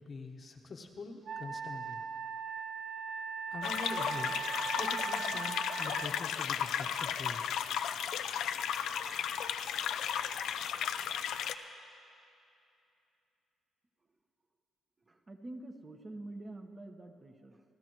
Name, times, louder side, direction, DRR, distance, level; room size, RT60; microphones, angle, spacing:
voice 1, 0.0-2.0 3.5-4.4 4.8-7.4, left 3 dB, 45° left, 2 dB, 1.2 m, -44 dB
Wind instrument woodwind instrument, 1.3-6.1, right 6 dB, 55° right, 0.6 m, -39 dB
sound 1, 3.6-11.5, left 9 dB, 80° left, 0.5 m, -34 dB
voice 2, 15.0-17.6, right 2 dB, 30° right, 4 dB, 1.2 m, -47 dB
29.0 x 13.5 x 3.1 m, 2.7 s
cardioid pair, 90°, 0 cm